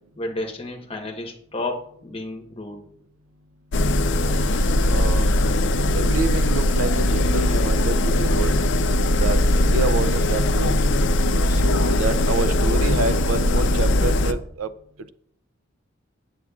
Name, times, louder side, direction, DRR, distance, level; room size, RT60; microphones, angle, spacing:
voice 1, 0.2-2.8, left 2 dB, 30° left, 2 dB, 1.0 m, -31 dB
sound 1, 3.7-14.3, left 1 dB, 60° left, 0.5 m, -20 dB
voice 2, 4.9-5.3 5.9-8.6 9.2-10.7 11.3-14.7, right 3 dB, 85° right, 13 dB, 0.5 m, -28 dB
8.4 x 7.3 x 2.4 m, 0.67 s
head